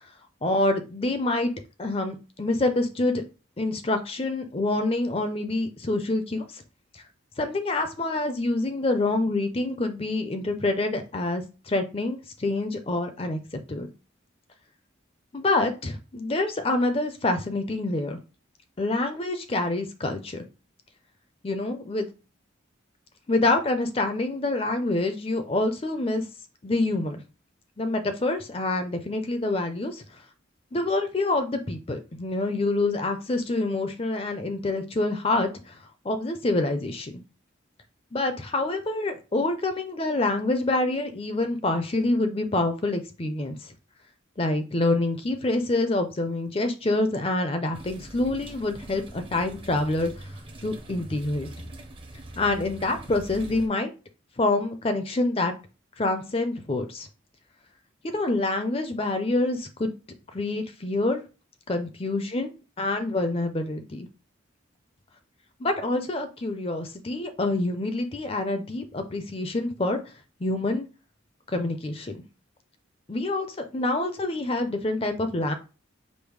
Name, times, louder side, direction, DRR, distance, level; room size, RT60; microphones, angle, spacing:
voice 1, 0.4-1.5 1.8-3.2 3.6-6.6 6.9-7.0 7.4-13.4 13.7-13.9 15.3-18.2 18.8-20.4 21.4-22.1 23.3-26.3 26.6-27.2 27.8-30.0 30.7-35.8 36.0-37.2 38.1-43.7 44.4-50.1 50.6-51.5 52.4-53.9 54.4-55.5 56.0-57.1 58.0-59.9 60.3-61.3 61.7-62.5 62.8-64.1 65.6-70.0 70.4-70.9 71.5-72.2 73.1-75.5, left 2 dB, 30° left, 0.5 m, -26 dB
sound 1, 47.7-53.7, right 1 dB, 25° right, 0.6 m, -43 dB
5.2 x 2.0 x 4.7 m
head